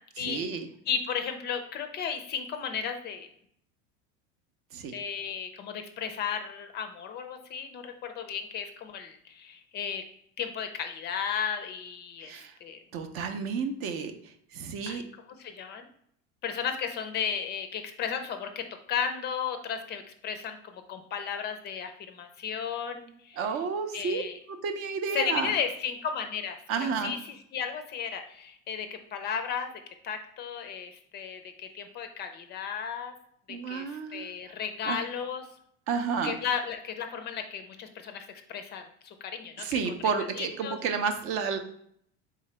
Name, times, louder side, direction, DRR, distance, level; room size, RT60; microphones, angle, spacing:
voice 1, 0.2-0.7 4.7-4.9 12.2-12.5 12.9-15.0 23.4-24.2 24.5-25.5 26.7-27.2 33.5-34.3 34.8-35.0 35.9-36.3 39.6-41.6, right 5 dB, 45° right, 8 dB, 0.5 m, -31 dB
voice 2, 0.9-3.3 4.9-10.0 10.4-12.3 12.6-12.8 14.9-15.0 15.4-15.9 16.4-20.6 20.9-23.4 23.9-24.4 25.1-29.7 30.0-33.1 33.5-35.4 36.2-39.8 40.4-40.8, left 7 dB, 35° left, 7 dB, 0.4 m, -34 dB
3.8 x 3.7 x 3.2 m, 0.68 s
supercardioid pair, 135°, 31 cm